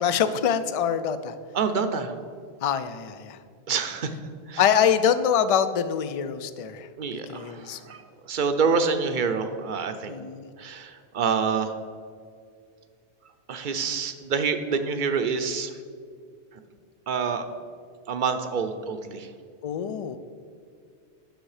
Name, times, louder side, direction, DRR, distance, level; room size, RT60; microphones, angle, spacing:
voice 1, 0.0-1.3 2.6-3.4 4.6-6.9 7.3-7.8 10.1-10.5 19.6-20.2, left 8 dB, 60° left, 12 dB, 0.3 m, -24 dB
voice 2, 1.5-2.1 3.7-4.1 4.5-4.6 7.0-10.1 10.6-11.7 13.5-15.8 16.5-16.6 17.1-17.5 18.1-19.3, right 5 dB, 55° right, 8 dB, 0.7 m, -27 dB
10.5 x 6.3 x 4.8 m, 2.2 s
omnidirectional pair, 1.1 m